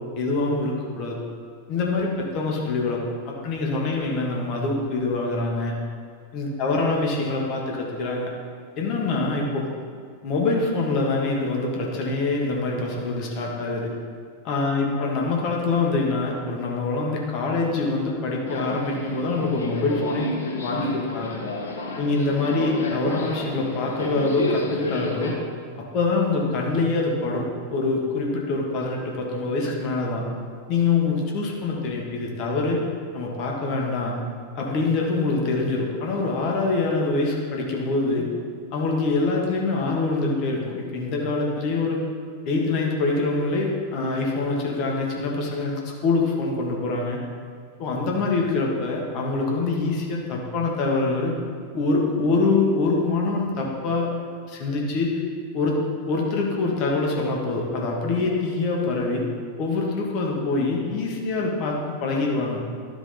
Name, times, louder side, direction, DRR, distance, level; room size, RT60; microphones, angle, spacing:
voice 1, 0.1-1.2 1.7-5.7 6.3-8.3 8.7-9.7 10.2-13.9 14.4-21.3 22.0-25.4 25.9-30.3 30.7-32.8 33.1-34.2 34.5-38.3 38.7-42.0 42.4-47.2 47.8-51.3 51.7-54.1 54.5-55.2 55.5-55.8 56.0-59.2 59.6-62.6, left 3 dB, 40° left, -1 dB, 1.6 m, -25 dB
Subway metro underground, 18.5-25.3, left 2 dB, 65° left, 1.3 m, -31 dB
12.5 x 4.9 x 4.0 m, 2.1 s
figure-of-eight pair, 90°, 0 cm